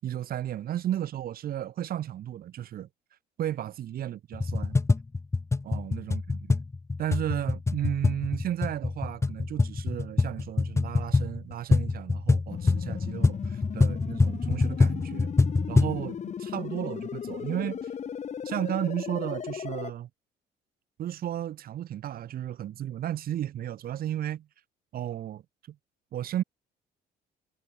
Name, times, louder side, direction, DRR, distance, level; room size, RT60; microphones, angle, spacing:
voice 1, 0.0-2.9 3.4-4.8 5.6-6.6 7.0-15.3 15.7-17.9 18.4-20.1 21.0-24.5 24.9-25.4 25.7-25.8 26.1-26.4, right 11 dB, 60° right, 6.5 m, -34 dB
sound 1, 4.3-16.0, left 3 dB, 15° left, 1.0 m, -25 dB
sound 2, 12.5-19.9, left 8 dB, 45° left, 3.9 m, -36 dB
cardioid pair, 110°, 17 cm